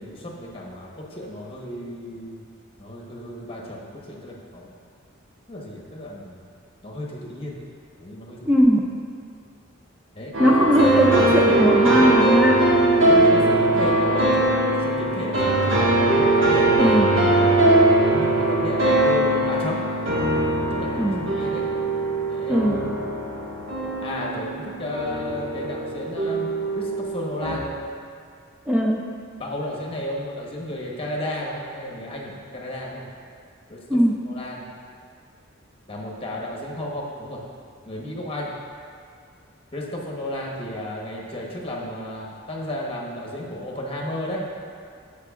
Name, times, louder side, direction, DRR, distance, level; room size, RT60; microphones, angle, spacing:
voice 1, 0.0-2.4 2.8-4.7 5.5-6.4 6.8-7.6 8.0-8.6 10.1-10.3 13.1-16.9 18.0-19.8 20.5-21.6 22.3-22.6 24.0-27.7 29.4-33.1 33.7-34.0 34.3-34.7 35.9-37.4 37.8-38.5 39.7-44.5, left 1 dB, 30° left, -3 dB, 1.0 m, -33 dB
voice 2, 8.5-8.9 10.4-12.8 16.8-17.2 21.0-21.2 22.5-22.9 28.7-29.0 33.9-34.2, equal, 5° right, -1 dB, 0.3 m, -19 dB
sound 1, 10.3-27.6, right 2 dB, 85° right, 1.5 m, -21 dB
14.0 x 4.8 x 2.4 m, 2.2 s
head